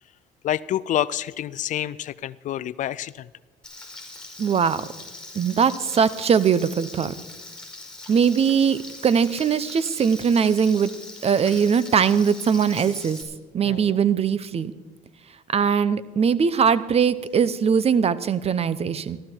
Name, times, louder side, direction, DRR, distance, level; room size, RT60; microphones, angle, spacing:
voice 1, 0.4-3.3 13.6-14.0, left 12 dB, 55° left, 20 dB, 0.4 m, -28 dB
Frying (food), 3.6-13.2, left 2 dB, 5° left, 4.7 m, -41 dB
voice 2, 4.4-4.9 5.3-7.1 8.1-10.9 11.2-13.2 13.5-14.7 15.5-19.2, right 7 dB, 40° right, 17 dB, 0.7 m, -21 dB
15.0 x 12.5 x 4.5 m, 1.2 s
supercardioid pair, 75°, 16 cm